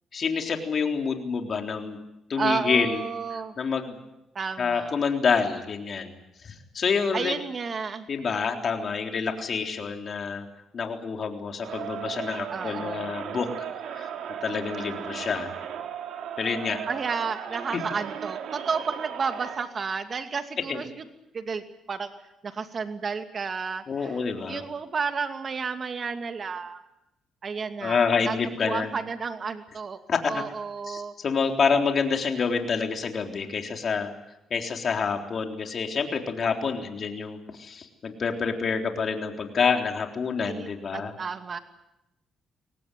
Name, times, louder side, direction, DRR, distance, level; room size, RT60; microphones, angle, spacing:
voice 1, 0.1-2.0 2.3-3.0 3.6-4.0 4.6-6.2 6.4-7.3 8.1-10.5 10.7-14.1 14.4-15.5 16.4-16.8 20.7-20.8 23.9-24.6 27.8-28.9 30.1-30.4 30.9-34.1 34.5-41.1, left 5 dB, 50° left, 3 dB, 3.7 m, -27 dB
voice 2, 2.4-3.5 4.3-5.0 7.1-8.1 12.5-13.1 16.9-20.9 21.3-22.1 22.4-24.2 24.5-26.8 27.4-28.4 28.6-30.0 30.3-31.1 40.5-41.6, right 5 dB, 45° right, 7 dB, 2.5 m, -32 dB
Crowd, 11.6-19.7, right 8 dB, 75° right, 3.0 m, -36 dB
23.5 x 19.0 x 9.4 m, 0.89 s
cardioid pair, 90°, 0 cm